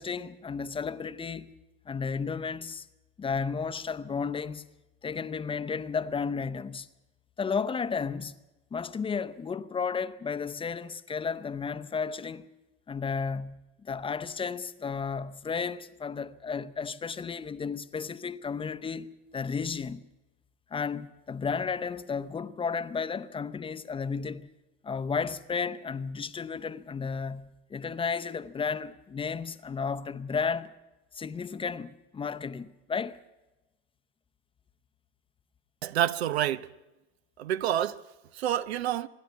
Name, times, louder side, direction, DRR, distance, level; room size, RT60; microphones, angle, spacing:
voice 1, 0.0-1.5 1.9-2.9 3.2-4.7 5.0-6.9 7.4-8.3 8.7-12.5 12.9-20.0 20.7-24.5 24.8-30.7 31.1-33.2, left 5 dB, 15° left, 0.7 m, -33 dB
voice 2, 35.8-36.7 37.4-38.0 38.3-39.1, right 11 dB, 90° right, 0.8 m, -28 dB
25.5 x 10.5 x 9.5 m
supercardioid pair, 110°, 31 cm